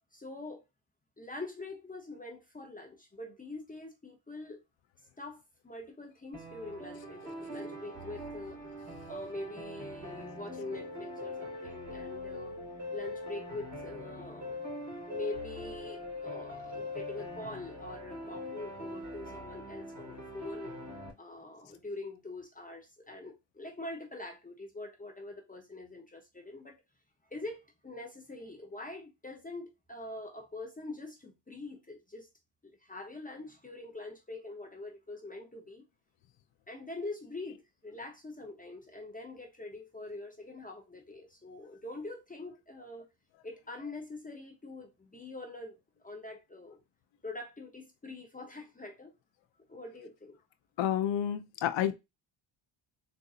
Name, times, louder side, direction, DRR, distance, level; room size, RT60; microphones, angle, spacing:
voice 1, 0.1-0.6 1.2-4.6 5.2-8.6 9.0-12.6 12.9-14.6 15.1-20.7 21.2-26.8 27.3-32.3 32.6-35.8 36.7-43.0 43.4-45.8 46.0-46.8 47.2-49.1 49.7-50.4, left 2 dB, 15° left, 0.7 m, -44 dB
sound 1, 6.3-21.1, left 1 dB, 35° right, 2.2 m, -42 dB
voice 2, 50.8-52.0, left 10 dB, 65° left, 0.6 m, -29 dB
3.8 x 2.6 x 2.4 m
cardioid pair, 110°, 50 cm